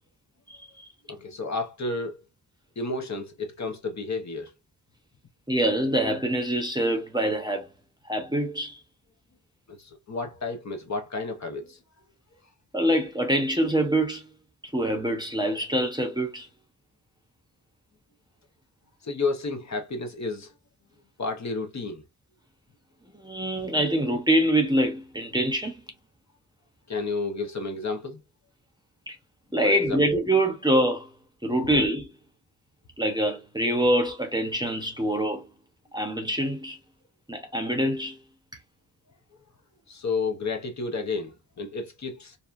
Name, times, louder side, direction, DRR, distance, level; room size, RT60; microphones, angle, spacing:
voice 1, 1.1-2.2 2.8-4.5 9.7-11.8 19.0-20.5 21.2-22.0 26.9-28.2 29.6-30.0 39.9-42.4, left 3 dB, 45° left, 0.8 m, -31 dB
voice 2, 5.5-7.7 8.1-8.8 12.7-14.2 14.6-16.5 23.2-25.8 29.1-29.2 29.5-31.1 31.4-32.1 33.0-35.5 35.9-36.8 37.3-38.2, right 1 dB, 10° right, 0.7 m, -25 dB
2.8 x 2.2 x 2.4 m
wide cardioid pair, 85°, 37 cm